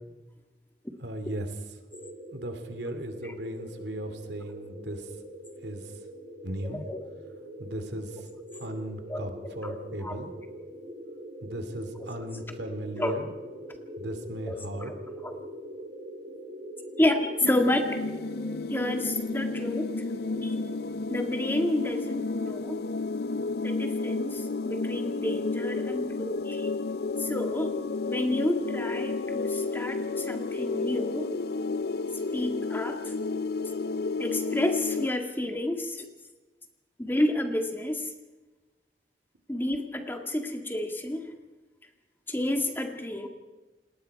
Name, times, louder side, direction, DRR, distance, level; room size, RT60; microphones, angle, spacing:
voice 1, 1.0-1.5 2.3-5.0 5.6-5.8 6.4-6.8 7.6-8.1 8.6-10.3 11.4-13.3 14.0-14.9, right 1 dB, 80° right, 7 dB, 2.5 m, -36 dB
sound 1, 1.9-20.9, right 1 dB, 50° right, 4.0 m, -43 dB
voice 2, 9.6-10.2 12.0-12.1 13.0-13.2 14.5-15.0 15.2-15.4 17.0-18.0 18.7-19.9 20.4-20.5 21.1-22.8 23.6-26.7 27.2-27.7 28.1-31.3 32.3-33.1 34.2-36.1 37.0-38.1 39.5-41.3 42.3-43.3, left 1 dB, 10° left, 4 dB, 1.9 m, -30 dB
sound 2, 17.4-35.1, left 3 dB, 60° left, 0.6 m, -31 dB
28.5 x 19.5 x 4.7 m, 1.2 s
head